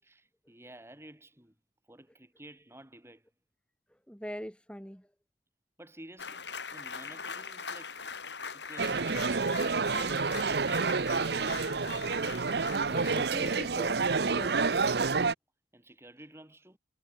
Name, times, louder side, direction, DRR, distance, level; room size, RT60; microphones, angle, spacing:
voice 1, 0.0-1.6 1.8-3.3 5.8-8.0 8.5-9.3 15.7-16.8, right 1 dB, 15° right, 5.5 m, -53 dB
voice 2, 3.9-5.1 12.9-14.6, equal, 5° left, 6.3 m, -42 dB
sound 1, 6.2-13.8, left 5 dB, 80° left, 7.4 m, -42 dB
sound 2, 8.8-15.3, right 4 dB, 65° right, 0.8 m, -29 dB
head